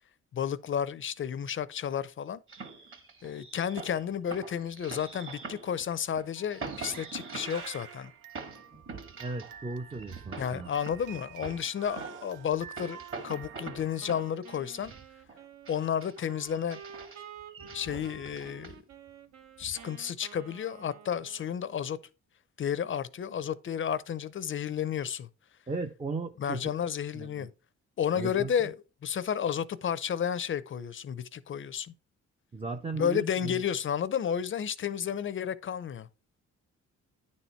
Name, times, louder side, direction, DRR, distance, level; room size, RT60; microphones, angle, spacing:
voice 1, 0.3-2.4 3.2-8.1 10.4-13.0 13.2-14.9 15.7-16.8 17.7-18.8 19.6-22.0 22.6-25.3 26.4-27.5 28.0-28.8 29.0-31.9 33.0-36.1, left 8 dB, 40° left, 0.6 m, -32 dB
sound 1, 2.5-9.6 9.9-15.4 15.7-19.1 19.6-19.9, right 4 dB, 45° right, 2.1 m, -44 dB
Crying sobbing, 6.4-14.5, right 9 dB, 90° right, 0.7 m, -49 dB
voice 2, 9.2-10.7 25.7-26.6 27.1-27.5 28.1-28.5 32.5-33.6, right 3 dB, 20° right, 0.6 m, -36 dB
Wind instrument woodwind instrument, 14.0-21.9, right 7 dB, 60° right, 0.9 m, -50 dB
9.8 x 4.3 x 4.4 m
cardioid pair, 90°, 30 cm